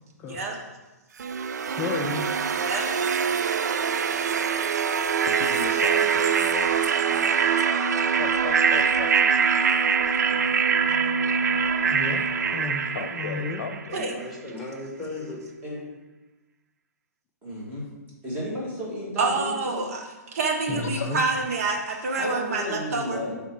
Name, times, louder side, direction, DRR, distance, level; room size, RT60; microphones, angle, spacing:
sound 1, 1.2-14.1, right 6 dB, 85° right, 0.4 m, -24 dB
voice 1, 1.8-2.2 11.8-13.6 20.7-21.2, left 4 dB, 20° left, 0 dB, 0.4 m, -33 dB
voice 2, 5.2-7.5 8.2-9.4 12.9-14.1 20.7-21.1, left 5 dB, 65° left, 7 dB, 0.7 m, -36 dB
voice 3, 13.9-15.5 23.2-23.3, left 2 dB, 5° right, -5 dB, 1.9 m, -36 dB
voice 4, 17.4-17.9 18.2-19.9 22.2-23.4, equal, 20° right, -5 dB, 2.1 m, -33 dB
voice 5, 19.2-20.0 20.3-23.2, right 3 dB, 60° right, 2 dB, 0.9 m, -27 dB
6.2 x 3.7 x 4.7 m, 1.1 s
hypercardioid pair, 145°, 9 cm